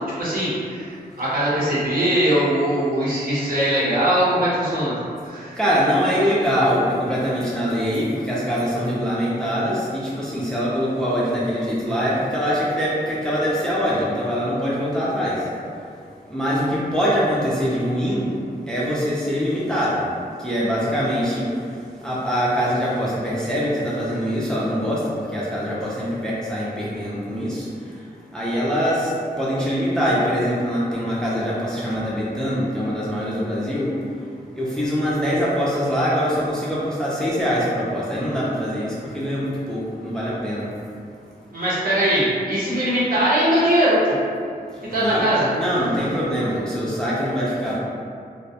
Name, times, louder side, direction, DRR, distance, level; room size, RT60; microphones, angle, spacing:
voice 1, 0.2-4.9 5.2-5.6 41.5-44.2 44.9-45.5, right 1 dB, 60° right, -9 dB, 0.8 m, -21 dB
voice 2, 5.6-15.4 16.3-18.3 18.7-20.0 20.4-21.5 22.0-25.0 25.3-27.6 28.3-29.1 29.4-33.9 34.6-40.7 45.0-45.3 45.5-47.8, equal, 5° left, -8 dB, 0.4 m, -23 dB
2.2 x 2.2 x 2.7 m, 2.3 s
wide cardioid pair, 115°, 16 cm